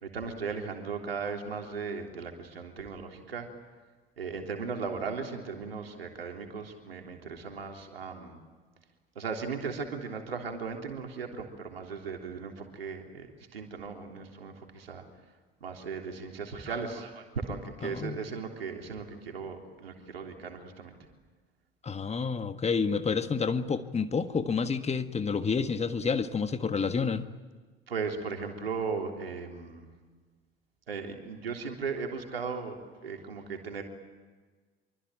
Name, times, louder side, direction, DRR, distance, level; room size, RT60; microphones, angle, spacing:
voice 1, 0.0-3.5 4.2-8.4 9.2-15.0 15.6-20.9 27.9-29.9 30.9-33.8, right 5 dB, 80° right, 3 dB, 3.4 m, -37 dB
voice 2, 17.8-18.2 21.8-27.2, left 5 dB, 20° left, 10 dB, 1.6 m, -29 dB
25.5 x 25.0 x 9.0 m, 1.4 s
figure-of-eight pair, 65°, 29 cm